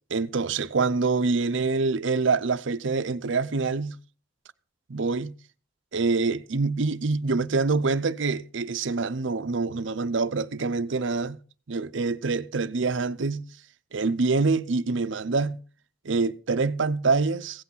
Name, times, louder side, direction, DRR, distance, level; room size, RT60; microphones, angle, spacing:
voice 1, 0.1-4.0 4.9-5.3 5.9-11.4 11.7-13.5 13.9-15.6 16.0-17.6, right 4 dB, 70° right, 0.7 m, -25 dB
16.5 x 8.4 x 5.6 m
head